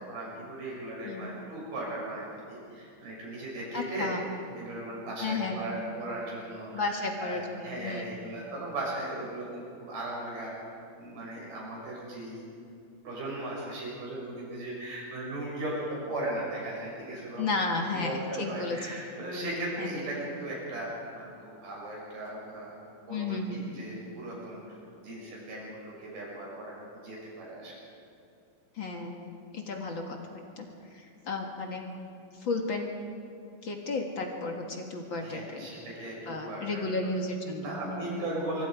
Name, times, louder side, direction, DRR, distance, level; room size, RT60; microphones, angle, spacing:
voice 1, 0.0-4.1 4.5-10.5 11.0-12.5 13.0-17.4 17.9-24.6 25.0-27.8 35.2-37.1 37.6-38.7, right 1 dB, 80° right, -4 dB, 8.3 m, -37 dB
voice 2, 3.7-4.2 5.2-5.6 6.7-8.1 17.4-19.0 19.8-20.0 23.1-23.8 28.8-30.7 30.9-31.9 32.4-32.9 33.6-35.7 36.3-38.2, left 3 dB, 45° left, 2 dB, 1.7 m, -33 dB
25.0 x 24.0 x 5.0 m, 2.5 s
omnidirectional pair, 4.3 m